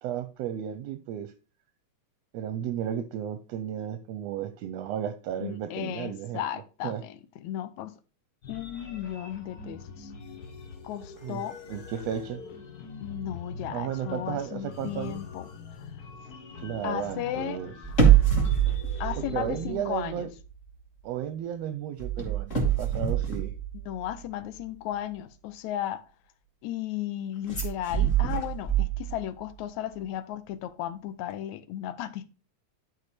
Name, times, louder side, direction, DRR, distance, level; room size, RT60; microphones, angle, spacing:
voice 1, 0.0-1.3 2.3-6.4 6.8-7.0 11.2-12.4 13.6-15.2 16.6-17.7 19.2-20.3 21.0-23.5, right 10 dB, 75° right, 1.6 m, -34 dB
voice 2, 5.4-8.0 8.5-10.1 10.8-11.6 13.0-15.5 16.8-17.6 19.0-20.3 23.9-26.0 26.6-32.3, left 12 dB, 80° left, 2.0 m, -35 dB
sound 1, 8.4-19.7, left 4 dB, 55° left, 1.0 m, -43 dB
sound 2, 17.8-20.1 20.4-20.7 22.0-24.2 27.5-29.4 29.6-29.7, right 8 dB, 20° left, 2.5 m, -25 dB
11.0 x 4.9 x 4.2 m
omnidirectional pair, 3.3 m